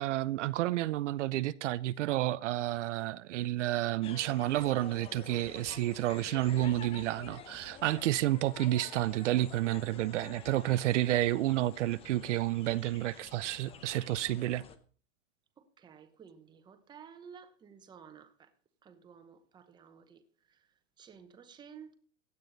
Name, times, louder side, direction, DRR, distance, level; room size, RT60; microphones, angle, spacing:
voice 1, 0.0-14.6, right 15 dB, 70° right, 0.6 m, -30 dB
sound 1, 4.0-14.8, left 7 dB, 15° left, 0.7 m, -49 dB
voice 2, 15.6-18.5 18.8-21.9, right 7 dB, 10° right, 1.0 m, -54 dB
16.0 x 9.9 x 4.0 m
supercardioid pair, 160°, 37 cm